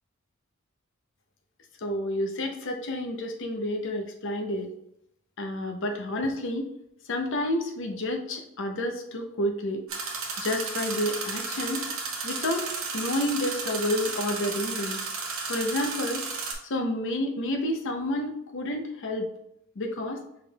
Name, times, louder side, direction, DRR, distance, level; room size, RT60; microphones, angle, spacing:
voice 1, 1.8-4.7 5.4-6.7 7.1-9.8 10.4-11.8 12.2-12.7 12.9-15.0 15.5-16.2 16.6-19.3 19.8-20.2, left 1 dB, 60° left, 3 dB, 0.7 m, -30 dB
sound 1, 9.9-16.5, right 4 dB, 70° right, 0.9 m, -33 dB
5.4 x 3.5 x 2.3 m, 0.76 s
head